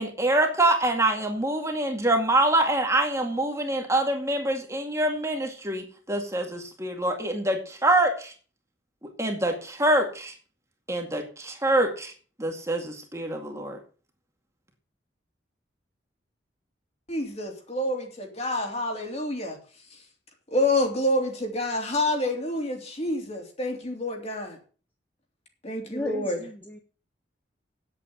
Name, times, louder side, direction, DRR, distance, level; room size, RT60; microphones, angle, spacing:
voice 1, 0.0-8.3 9.2-10.3 10.9-12.1 12.4-13.8, right 1 dB, 15° right, 2.1 m, -25 dB
voice 2, 17.1-19.6 20.5-24.6 25.6-26.4, left 1 dB, 35° left, 3.2 m, -28 dB
voice 3, 25.9-26.8, left 1 dB, 10° left, 1.3 m, -34 dB
9.4 x 8.4 x 7.8 m
head